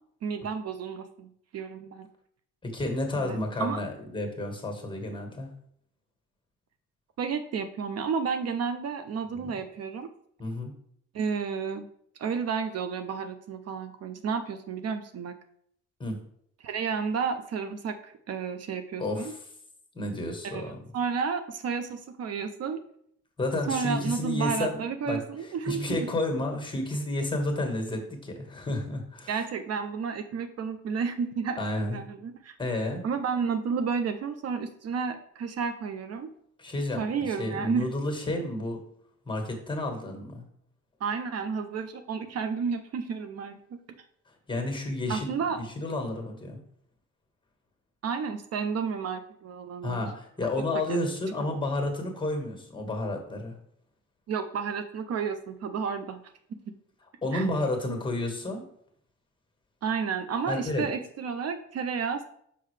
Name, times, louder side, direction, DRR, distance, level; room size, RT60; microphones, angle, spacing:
voice 1, 0.2-2.1 3.2-3.8 7.2-10.1 11.1-11.9 12.2-15.3 16.6-19.3 20.4-22.8 23.7-26.1 29.3-31.6 31.8-32.6 33.0-36.3 37.0-37.9 41.0-43.6 45.1-45.6 48.0-50.0 50.4-51.0 54.3-56.2 57.3-57.5 59.8-62.2, right 6 dB, 55° right, 9 dB, 0.5 m, -31 dB
voice 2, 2.6-5.5 9.3-9.5 10.4-10.7 16.0-16.2 19.0-19.4 19.9-20.8 23.4-24.8 25.1-29.3 31.6-32.0 32.6-33.0 36.6-38.8 39.3-40.4 44.5-46.6 49.8-53.5 57.2-58.6 60.5-60.9, left 2 dB, 15° left, 3 dB, 1.6 m, -31 dB
5.6 x 5.5 x 3.3 m, 0.68 s
cardioid pair, 90°, 30 cm